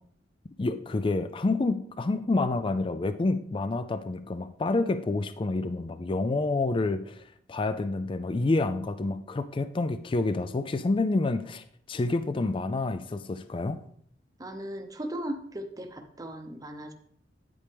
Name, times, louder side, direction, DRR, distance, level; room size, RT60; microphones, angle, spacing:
voice 1, 0.6-13.8, left 2 dB, 30° left, 11 dB, 0.4 m, -28 dB
voice 2, 14.4-16.9, right 1 dB, 20° right, 5 dB, 0.8 m, -37 dB
9.6 x 8.5 x 3.4 m, 0.64 s
head